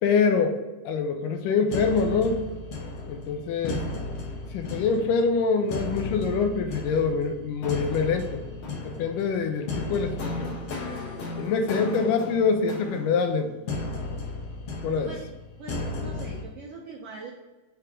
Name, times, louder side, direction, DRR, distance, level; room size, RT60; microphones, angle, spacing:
voice 1, 0.0-0.6 0.8-2.5 3.1-3.8 4.5-8.4 8.8-10.6 11.4-13.5 14.8-15.1, left 5 dB, 80° left, 6 dB, 2.3 m, -25 dB
sound 1, 1.7-16.4, left 2 dB, 60° left, 1.7 m, -35 dB
voice 2, 15.6-17.3, right 3 dB, 85° right, -3 dB, 1.3 m, -41 dB
5.7 x 3.4 x 4.9 m, 1.2 s
omnidirectional pair, 3.8 m